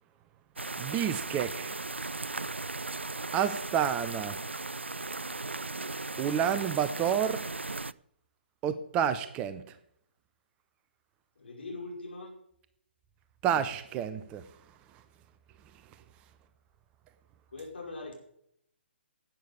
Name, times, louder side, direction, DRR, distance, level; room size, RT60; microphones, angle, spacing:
sound 1, 0.6-7.9, right 3 dB, 80° right, 0.4 m, -37 dB
voice 1, 0.8-1.7 3.3-4.4 6.2-7.4 8.6-9.6 13.4-14.4, right 9 dB, 20° right, 12 dB, 0.6 m, -29 dB
voice 2, 11.3-12.3 17.5-18.2, left 3 dB, 60° left, 0 dB, 5.1 m, -41 dB
12.0 x 8.4 x 7.0 m, 0.72 s
figure-of-eight pair, 135°, 6 cm